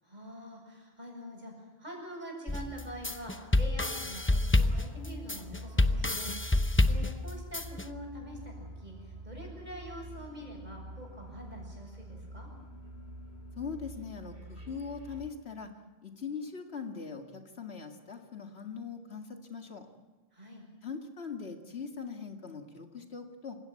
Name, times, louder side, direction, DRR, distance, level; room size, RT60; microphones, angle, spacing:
voice 1, 0.0-12.5 20.3-20.7, equal, 45° right, 0 dB, 7.6 m, -45 dB
sound 1, 2.5-7.8, left 2 dB, 15° left, 0.8 m, -28 dB
sound 2, 4.6-15.3, right 1 dB, 85° right, 4.0 m, -47 dB
voice 2, 13.6-15.7 16.0-19.9 20.8-23.6, left 5 dB, 80° left, 4 dB, 2.4 m, -41 dB
28.0 x 16.5 x 9.6 m, 1.2 s
omnidirectional pair, 1.1 m